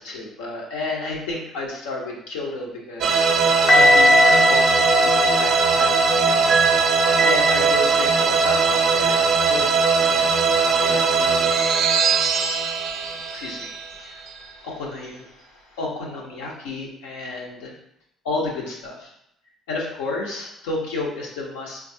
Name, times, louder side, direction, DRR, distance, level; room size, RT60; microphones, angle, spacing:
voice 1, 0.0-6.5 7.2-10.4 10.6-11.4 12.9-17.8 18.2-19.1 19.7-21.9, left 3 dB, 90° left, -3 dB, 0.8 m, -32 dB
sound 1, 3.0-14.4, right 5 dB, 65° right, 0.4 m, -19 dB
sound 2, 3.7-8.6 9.3-9.5, left 2 dB, 50° left, 0.6 m, -21 dB
3.8 x 2.4 x 2.6 m, 0.77 s
supercardioid pair, 70°, 0 cm